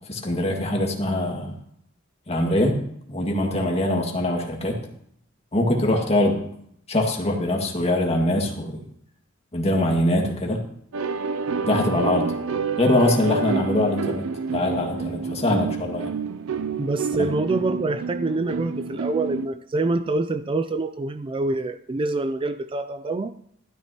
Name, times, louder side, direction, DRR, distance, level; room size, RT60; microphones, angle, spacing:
voice 1, 0.1-1.5 2.3-2.7 3.1-4.8 5.5-6.5 6.9-8.8 9.5-10.6 11.6-12.3 12.8-14.2 14.5-16.1 17.2-17.3, left 1 dB, 30° left, 1 dB, 1.9 m, -23 dB
sound 1, 10.9-19.5, right 5 dB, 90° right, 0.5 m, -28 dB
voice 2, 16.8-23.4, right 2 dB, 25° right, 10 dB, 0.4 m, -26 dB
13.0 x 12.5 x 2.9 m, 0.69 s
head